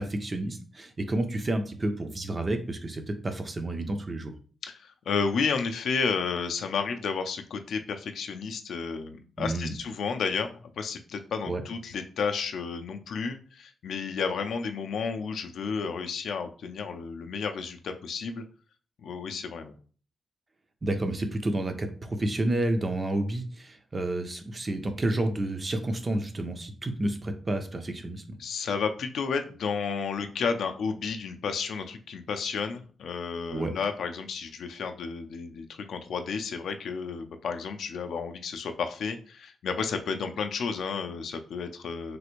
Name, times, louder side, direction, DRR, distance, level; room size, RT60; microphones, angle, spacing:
voice 1, 0.0-4.3 9.4-9.8 11.5-11.6 20.8-28.2 33.5-33.7, right 1 dB, 20° right, 7 dB, 0.4 m, -30 dB
voice 2, 4.6-18.4 19.0-19.7 28.4-42.2, left 5 dB, 70° left, 6 dB, 0.4 m, -32 dB
3.2 x 2.4 x 3.0 m, 0.40 s
wide cardioid pair, 170°, 0 cm